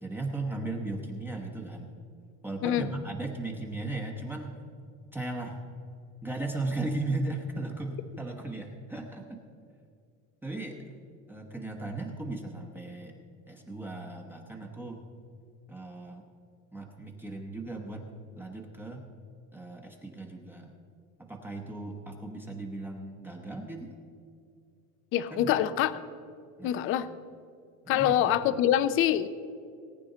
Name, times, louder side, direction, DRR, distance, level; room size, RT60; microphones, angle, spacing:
voice 1, 0.0-1.9 2.4-4.6 5.1-5.6 6.2-9.4 10.4-10.9 11.3-13.1 13.5-15.1 15.7-16.2 16.7-19.1 19.5-20.7 21.2-23.9 25.3-25.6 26.6-26.9 27.8-28.4, right 2 dB, 5° right, 1 dB, 0.9 m, -37 dB
voice 2, 25.1-25.9 26.6-27.1 27.9-29.3, left 11 dB, 40° left, 14 dB, 0.5 m, -25 dB
19.0 x 9.0 x 3.9 m, 2.3 s
cardioid pair, 145°, 35 cm